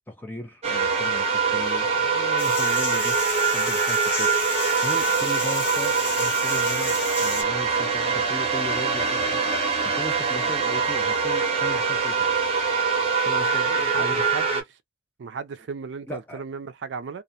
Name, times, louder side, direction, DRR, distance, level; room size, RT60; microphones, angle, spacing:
voice 1, 0.1-4.5 4.8-12.3 13.2-14.4 16.1-16.4, left 1 dB, 10° left, 0.7 m, -38 dB
sound 1, 0.6-14.6, right 5 dB, 35° right, 0.7 m, -24 dB
sound 2, 2.4-7.4, left 3 dB, 30° left, 1.4 m, -32 dB
voice 2, 13.8-14.8 15.2-17.2, right 5 dB, 85° right, 0.4 m, -35 dB
2.4 x 2.1 x 2.6 m
head